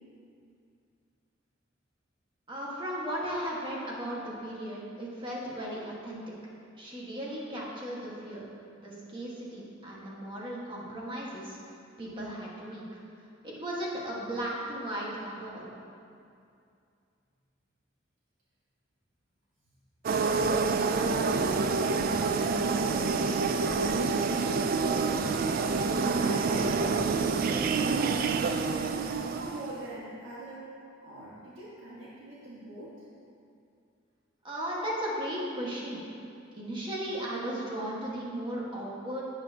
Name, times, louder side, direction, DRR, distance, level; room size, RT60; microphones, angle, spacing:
voice 1, 2.5-6.2 6.7-8.4 8.8-11.6 12.0-13.0 13.4-15.7 34.4-36.0 36.5-39.2, right 1 dB, 25° right, -5 dB, 1.6 m, -36 dB
sound 1, 20.0-29.8, right 4 dB, 50° right, 0.4 m, -27 dB
voice 2, 20.2-22.5 22.9-30.6 31.0-32.9, right 1 dB, 80° right, -8 dB, 1.7 m, -44 dB
10.0 x 8.9 x 2.9 m, 2.5 s
head